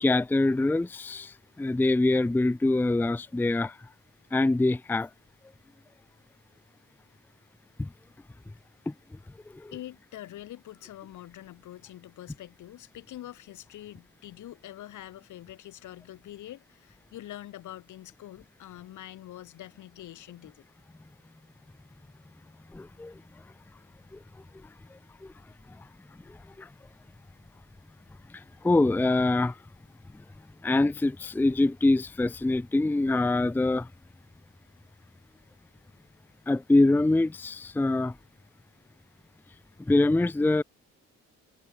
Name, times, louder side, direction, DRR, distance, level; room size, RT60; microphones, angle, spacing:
voice 1, 0.0-1.3 1.6-3.7 4.3-5.1 7.8-7.9 22.7-23.1 28.6-29.5 30.6-33.9 36.5-38.1 39.9-40.6, left 2 dB, 5° left, 0.5 m, -24 dB
voice 2, 9.7-20.6, left 13 dB, 75° left, 2.6 m, -45 dB
cardioid pair, 90°, 30 cm